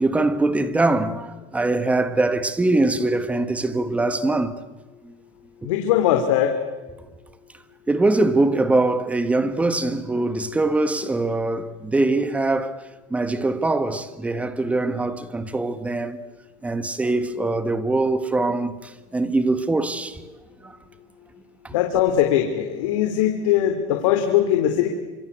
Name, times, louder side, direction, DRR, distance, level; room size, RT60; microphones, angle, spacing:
voice 1, 0.0-4.6 5.0-5.1 7.9-12.8 13.1-16.2 16.6-20.3 20.6-20.8 21.6-21.7, right 2 dB, 10° right, 1.5 m, -22 dB
voice 2, 5.6-6.5 21.7-24.9, left 10 dB, 85° left, 3.2 m, -20 dB
28.0 x 25.5 x 8.2 m
cardioid pair, 155°, 16 cm